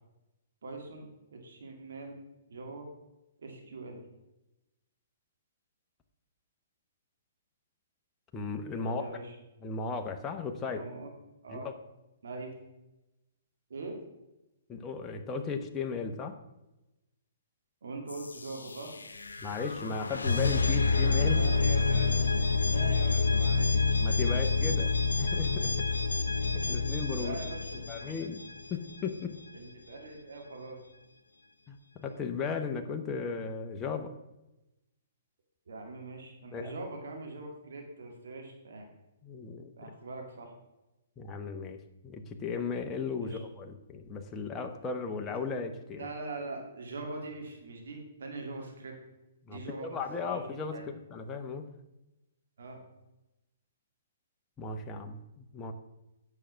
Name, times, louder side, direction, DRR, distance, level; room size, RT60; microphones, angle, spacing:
voice 1, 0.6-2.2 2.5-2.9 3.4-4.0 8.8-9.3 10.6-11.1 11.4-11.7 12.2-12.5 13.7-14.0 17.8-19.0 21.3-22.2 22.7-23.9 26.6-26.8 27.2-28.2 29.5-30.8 35.7-38.9 39.8-40.5 43.2-43.4 46.0-48.9 49.5-50.8 52.6-52.8, right 3 dB, 70° right, 2 dB, 2.2 m, -42 dB
voice 2, 8.3-9.0 9.6-10.8 11.5-11.7 14.7-16.4 19.4-21.5 24.0-24.9 25.2-25.7 26.5-27.3 27.9-29.4 31.7-34.1 36.5-36.7 39.2-39.7 41.2-41.8 42.0-46.1 49.4-51.6 54.6-55.7, left 5 dB, 20° left, 4 dB, 1.0 m, -36 dB
sound 1, 18.1-28.9, left 4 dB, 90° left, 0.8 m, -28 dB
8.8 x 6.4 x 5.7 m, 0.96 s
hypercardioid pair, 130°, 0 cm